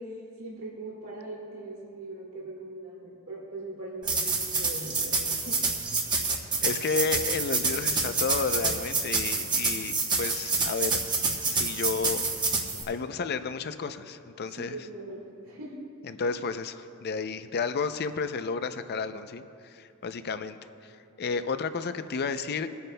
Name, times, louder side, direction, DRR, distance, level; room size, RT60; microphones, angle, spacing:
voice 1, 0.0-5.6 14.4-15.8, right 2 dB, 90° right, -4 dB, 1.7 m, -41 dB
sound 1, 4.0-12.8, right 3 dB, 20° right, 1.0 m, -28 dB
voice 2, 6.6-11.0 11.5-12.3 12.9-14.8 16.0-20.6 20.8-22.7, left 4 dB, 50° left, 11 dB, 0.5 m, -32 dB
27.0 x 9.4 x 2.2 m, 2.6 s
head